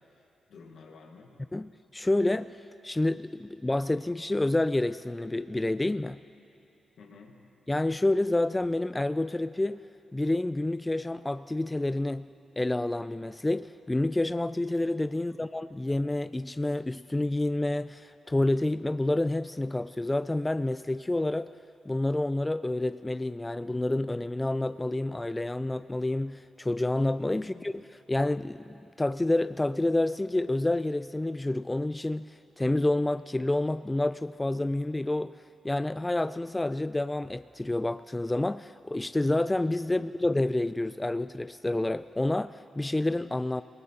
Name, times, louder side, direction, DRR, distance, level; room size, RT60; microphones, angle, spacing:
voice 1, 0.0-1.3 7.0-7.4 15.1-15.4 27.4-27.7, left 4 dB, 70° left, 1.7 m, -52 dB
voice 2, 1.5-6.2 7.7-9.8 10.1-12.3 12.6-21.5 21.9-35.4 35.6-43.6, left 2 dB, 20° left, 0.3 m, -28 dB
22.0 x 19.0 x 2.9 m
hypercardioid pair, 40°, 0 cm